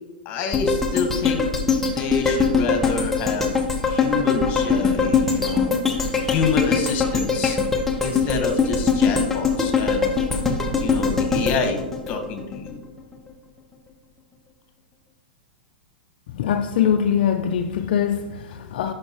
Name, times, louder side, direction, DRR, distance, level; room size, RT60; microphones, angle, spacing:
voice 1, 0.2-1.5 1.8-7.6 8.0-10.1 10.8-12.8, left 4 dB, 35° left, 1.4 m, -28 dB
sound 1, 0.5-12.7 13.1-13.2, left 5 dB, 5° left, 0.9 m, -22 dB
voice 2, 16.3-18.9, left 8 dB, 65° left, 0.5 m, -22 dB
10.5 x 5.6 x 2.9 m
hypercardioid pair, 130°, 5 cm